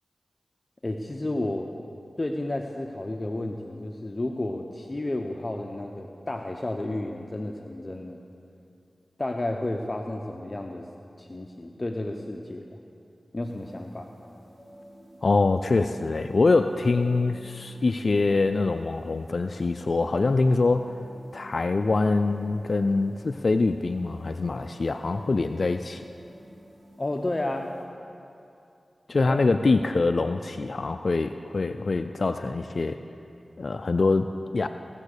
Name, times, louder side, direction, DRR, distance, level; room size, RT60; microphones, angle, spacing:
voice 1, 0.8-1.7 2.2-8.2 9.2-10.9 11.2-12.8 13.3-14.1 27.0-27.7 29.2-29.5, left 1 dB, 30° left, 2 dB, 0.7 m, -32 dB
sound 1, 13.4-27.8, right 1 dB, 55° right, 3.0 m, -51 dB
voice 2, 15.2-21.0 21.3-26.0 29.1-33.0 33.6-34.7, left 3 dB, 60° left, 7 dB, 0.4 m, -24 dB
17.5 x 7.0 x 6.6 m, 2.6 s
wide cardioid pair, 65°, 0 cm